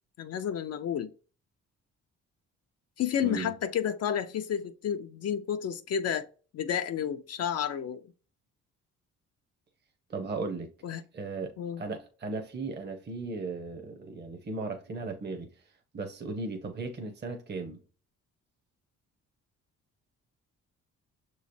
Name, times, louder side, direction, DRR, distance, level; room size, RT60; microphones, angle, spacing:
voice 1, 0.2-1.1 3.0-6.3 6.5-8.0 10.8-11.0 11.6-11.8, left 9 dB, 55° left, 0.5 m, -31 dB
voice 2, 10.1-10.7 11.1-15.5 15.9-17.8, right 3 dB, 35° right, 0.9 m, -36 dB
6.3 x 3.1 x 2.6 m
cardioid pair, 90°, 30 cm